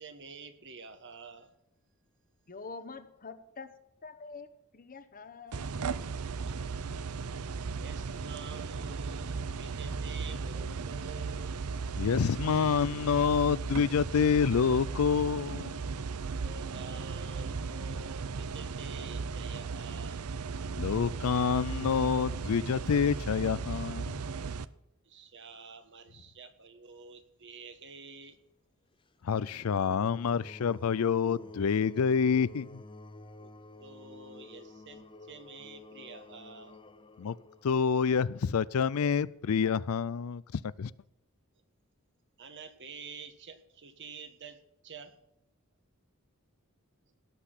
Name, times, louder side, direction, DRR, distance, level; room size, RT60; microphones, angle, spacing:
voice 1, 0.0-1.5 6.4-6.5 7.8-11.8 16.4-20.2 25.0-28.4 33.4-33.5 33.8-36.8 42.4-45.2, right 4 dB, 55° right, 1.5 m, -48 dB
voice 2, 2.5-3.7 4.0-5.8, left 4 dB, 40° left, 1.0 m, -46 dB
sound 1, 5.5-24.7, right 4 dB, 85° right, 0.6 m, -36 dB
voice 3, 12.0-15.8 20.8-24.2 29.2-32.8 37.2-37.4 37.6-40.4 40.8-40.9, left 6 dB, 75° left, 0.4 m, -27 dB
sound 2, 29.3-38.4, left 2 dB, 25° left, 0.7 m, -50 dB
17.5 x 6.0 x 8.3 m
head